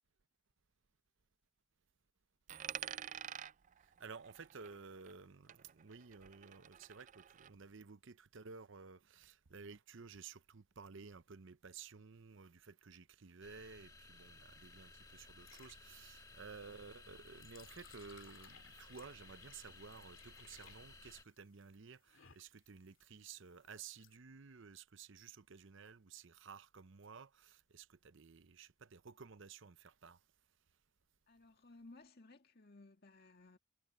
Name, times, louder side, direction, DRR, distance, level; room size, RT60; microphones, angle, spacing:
Coin (dropping), 2.5-5.2 5.5-7.5, right 9 dB, 35° right, 0.3 m, -49 dB
voice 1, 3.8-30.2, right 5 dB, 60° right, 0.7 m, -54 dB
sound 1, 13.4-21.2, left 3 dB, 15° left, 1.5 m, -58 dB
sound 2, 14.2-24.2, left 8 dB, 65° left, 2.4 m, -64 dB
voice 2, 31.3-33.6, left 2 dB, 45° left, 2.0 m, -59 dB
head